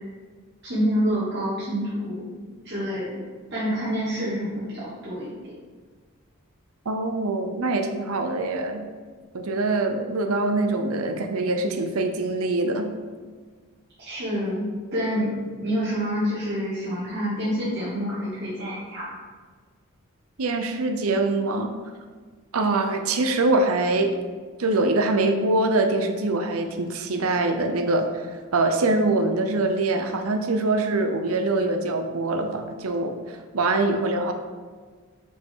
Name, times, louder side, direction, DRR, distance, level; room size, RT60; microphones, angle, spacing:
voice 1, 0.6-2.3 2.6-3.2 3.5-5.3 14.0-19.2, equal, 50° right, -10 dB, 1.6 m, -27 dB
voice 2, 6.9-8.8 9.3-12.9 20.4-21.7 22.5-24.1 24.6-28.3 28.5-34.3, right 2 dB, 80° right, 5 dB, 0.6 m, -24 dB
5.4 x 5.1 x 3.7 m, 1.5 s
head